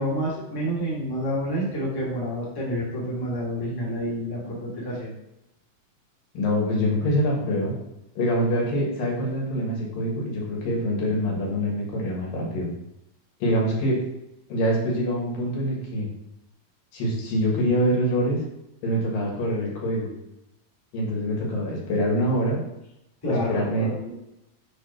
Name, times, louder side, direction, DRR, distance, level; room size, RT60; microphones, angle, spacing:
voice 1, 0.0-5.1 23.2-24.1, equal, 10° left, -6 dB, 1.6 m, -29 dB
voice 2, 6.4-7.7 8.2-12.7 13.4-14.0 14.5-16.1 16.9-18.4 18.8-20.1 20.9-22.6 23.2-23.9, equal, 80° left, -3 dB, 3.5 m, -25 dB
7.8 x 4.0 x 4.4 m, 0.87 s
omnidirectional pair, 4.0 m